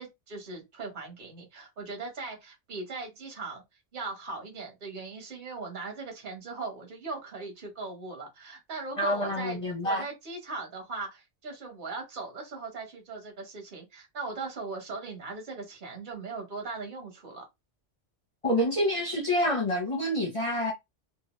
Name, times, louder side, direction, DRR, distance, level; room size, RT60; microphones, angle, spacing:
voice 1, 0.0-3.6 3.9-17.5, right 3 dB, 45° right, 1.2 m, -39 dB
voice 2, 9.0-10.0 18.4-20.7, left 1 dB, 35° left, 0.5 m, -27 dB
2.8 x 2.0 x 2.9 m
omnidirectional pair, 1.2 m